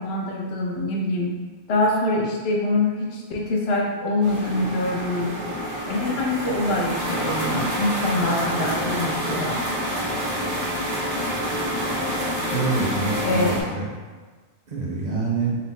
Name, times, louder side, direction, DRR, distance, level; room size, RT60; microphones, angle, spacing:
voice 1, 0.0-1.4 1.7-5.3 5.9-9.6 13.2-13.6, left 2 dB, 70° left, -1 dB, 0.9 m, -24 dB
sound 1, 4.2-13.6, equal, 85° right, 1.4 m, -27 dB
voice 2, 12.5-13.9 14.7-15.6, right 3 dB, 50° right, -4 dB, 0.6 m, -26 dB
4.2 x 2.0 x 4.0 m, 1.4 s
omnidirectional pair, 1.1 m